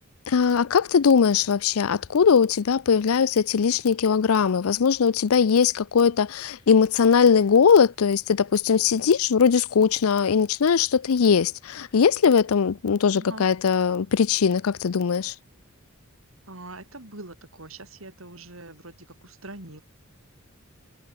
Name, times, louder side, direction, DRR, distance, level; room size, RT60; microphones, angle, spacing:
voice 1, 0.3-15.3, left 6 dB, 80° left, 0.5 m, -20 dB
voice 2, 16.5-19.8, right 2 dB, 65° right, 5.6 m, -42 dB
head